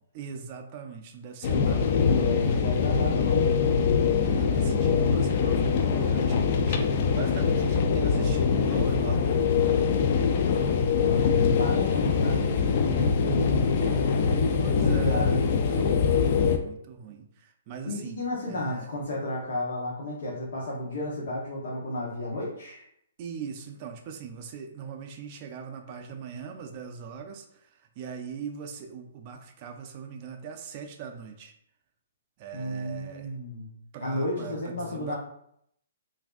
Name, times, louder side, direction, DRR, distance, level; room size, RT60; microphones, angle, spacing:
voice 1, 0.1-2.7 4.2-9.9 14.6-18.9 23.2-31.5 32.4-33.3 33.9-35.2, right 6 dB, 40° right, 4 dB, 0.4 m, -40 dB
sound 1, 1.4-16.6, left 6 dB, 45° left, 0.4 m, -23 dB
voice 2, 1.5-3.5 10.9-15.5 17.8-22.8 32.5-33.7 34.0-35.2, left 1 dB, 70° left, -5 dB, 0.9 m, -32 dB
3.3 x 2.6 x 2.4 m, 0.71 s
hypercardioid pair, 135°, 0 cm